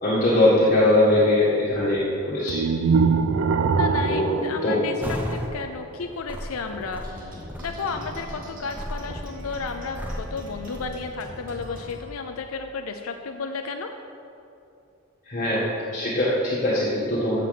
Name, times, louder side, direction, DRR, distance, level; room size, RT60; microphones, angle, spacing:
voice 1, 0.0-2.7 4.1-4.4 4.6-4.9 15.3-17.4, left 1 dB, 35° left, -9 dB, 1.7 m, -21 dB
sound 1, 2.5-5.6, right 5 dB, 70° right, 0.4 m, -23 dB
voice 2, 3.7-7.3 7.6-13.9, left 4 dB, 90° left, 5 dB, 0.5 m, -33 dB
sound 2, 5.0-5.5 6.0-10.9, equal, 10° right, 0.8 m, -35 dB
sound 3, 7.0-12.0, equal, 40° right, 1.9 m, -41 dB
7.4 x 7.0 x 7.5 m, 2.7 s
head